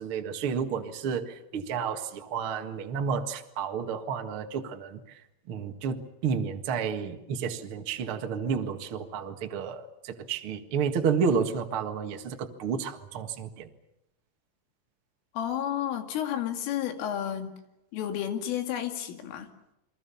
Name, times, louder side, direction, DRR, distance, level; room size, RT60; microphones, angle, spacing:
voice 1, 0.0-5.2 5.5-13.7, right 6 dB, 75° right, 5 dB, 1.2 m, -31 dB
voice 2, 15.3-17.5 17.9-19.5, left 10 dB, 85° left, 6 dB, 4.9 m, -31 dB
29.5 x 23.0 x 7.1 m, 0.86 s
omnidirectional pair, 5.7 m